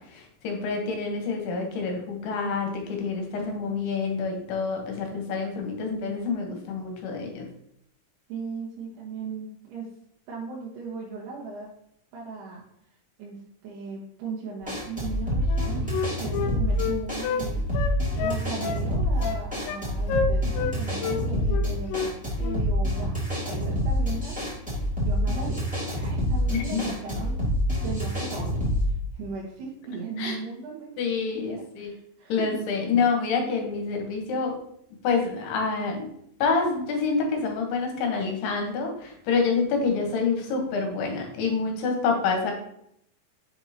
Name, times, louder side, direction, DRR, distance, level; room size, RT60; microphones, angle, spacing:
voice 1, 0.0-7.5 26.5-27.2 30.2-30.4 31.0-31.9 32.3-34.5 35.0-36.1 36.4-42.5, left 4 dB, 75° left, 2 dB, 3.0 m, -27 dB
voice 2, 8.3-9.9 10.3-11.7 12.1-12.6 13.2-17.7 18.2-27.5 27.8-31.0 31.3-32.6, right 4 dB, 75° right, -4 dB, 3.0 m, -37 dB
sound 1, 14.6-28.9, equal, 5° right, 1.1 m, -27 dB
Wind instrument woodwind instrument, 15.5-17.4 17.7-18.8 19.2-19.8 20.1-20.7 21.0-21.2 21.5-22.1 22.4-22.6, left 6 dB, 90° left, 2.9 m, -29 dB
7.1 x 5.3 x 2.8 m, 0.72 s
omnidirectional pair, 5.0 m